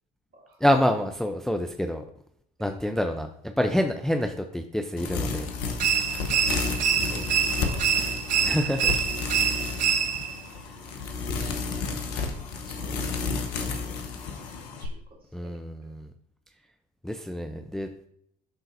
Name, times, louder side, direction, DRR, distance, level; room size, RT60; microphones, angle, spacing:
voice 1, 0.6-2.0 2.6-5.5 7.2-7.3 8.4-9.0 10.7-10.8 15.3-16.1 17.0-17.9, left 1 dB, ahead, 5 dB, 0.5 m, -27 dB
sound 1, 5.0-14.9, left 4 dB, 70° left, 0.9 m, -32 dB
sound 2, 5.8-10.4, right 8 dB, 80° right, 0.6 m, -26 dB
voice 2, 6.3-8.0 11.0-11.1 11.4-11.6 12.1-12.2 12.6-14.0 14.8-15.9, right 2 dB, 45° right, -2 dB, 2.6 m, -49 dB
11.5 x 3.8 x 2.6 m, 0.69 s
hypercardioid pair, 60°, 21 cm